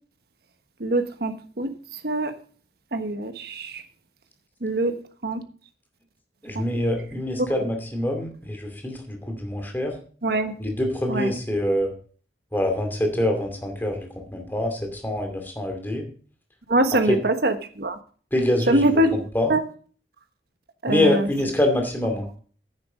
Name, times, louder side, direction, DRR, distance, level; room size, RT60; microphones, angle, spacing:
voice 1, 0.8-2.3 2.9-3.8 4.6-5.0 5.2-5.4 6.5-6.6 7.6-7.7 10.2-10.5 11.1-11.3 16.7-18.0 18.7-19.2 19.5-19.6 20.8-21.3, right 1 dB, 60° right, 8 dB, 1.3 m, -23 dB
voice 2, 6.4-9.9 10.6-11.9 12.5-16.0 17.1-17.2 18.3-18.9 19.3-19.5 20.9-22.3, left 1 dB, 10° left, 3 dB, 2.5 m, -25 dB
10.5 x 9.6 x 5.0 m, 0.42 s
head